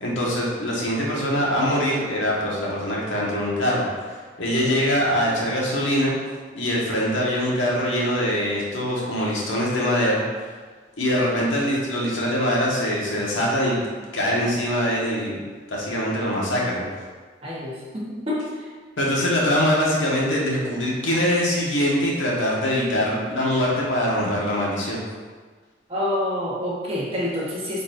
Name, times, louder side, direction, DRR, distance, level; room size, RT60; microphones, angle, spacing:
voice 1, 0.0-6.1 6.5-10.2 11.0-13.8 14.1-15.4 15.7-16.9 19.0-25.0, equal, 85° left, -4 dB, 1.4 m, -23 dB
voice 2, 17.4-18.7 25.9-27.8, left 1 dB, 30° right, -6 dB, 1.3 m, -27 dB
8.7 x 4.1 x 2.7 m, 1.5 s
head